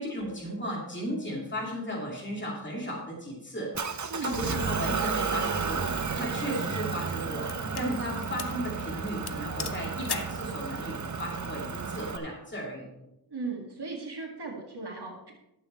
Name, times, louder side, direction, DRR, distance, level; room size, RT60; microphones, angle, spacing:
voice 1, 0.0-12.9, equal, 25° left, -2 dB, 2.7 m, -35 dB
Motor vehicle (road) / Engine, 3.7-12.2, right 5 dB, 45° right, 0.8 m, -32 dB
voice 2, 4.1-4.5 13.3-15.3, right 4 dB, 65° right, 0 dB, 2.0 m, -37 dB
sound 1, 6.0-6.1 6.7-7.9 8.4-8.6 8.9-9.0 9.3-10.4, left 7 dB, 65° left, 0.8 m, -39 dB
12.0 x 7.8 x 4.4 m, 0.88 s
wide cardioid pair, 80°, 42 cm